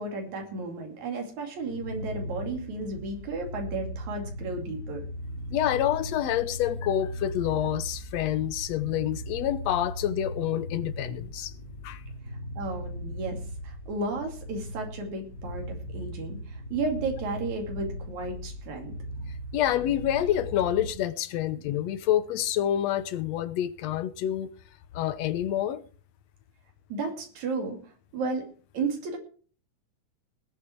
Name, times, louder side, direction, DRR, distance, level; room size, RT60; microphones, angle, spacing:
voice 1, 0.0-5.0 12.6-18.9 21.5-21.6 26.9-28.5 28.7-29.2, right 3 dB, 75° right, 4.0 m, -33 dB
sound 1, 1.6-20.9, equal, 40° left, 3.0 m, -38 dB
voice 2, 5.5-11.5 11.8-12.0 19.5-24.5 24.9-25.8, left 11 dB, 70° left, 1.9 m, -27 dB
19.5 x 8.4 x 4.5 m
omnidirectional pair, 3.3 m